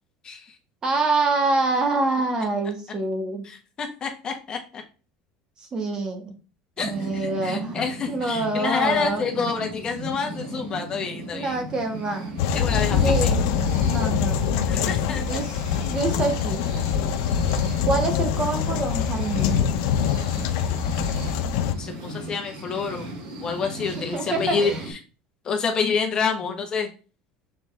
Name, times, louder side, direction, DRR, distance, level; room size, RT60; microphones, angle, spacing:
voice 1, 0.2-0.6 3.4-4.8 6.8-11.6 12.5-13.3 14.7-15.4 21.8-23.1 23.4-25.0 25.4-26.9, left 5 dB, 30° left, 3 dB, 1.3 m, -28 dB
voice 2, 0.8-3.4 5.7-6.3 6.8-7.8 8.1-9.2 11.3-12.3 13.0-13.5 13.8-14.4 15.3-16.6 17.8-19.6 24.1-24.8, right 2 dB, 25° right, 5 dB, 1.5 m, -26 dB
sound 1, 6.8-24.9, right 2 dB, 70° right, 3.5 m, -36 dB
sound 2, 12.4-21.7, left 8 dB, 75° left, 0.7 m, -24 dB
6.8 x 4.1 x 3.5 m, 0.34 s
cardioid pair, 140°, 3 cm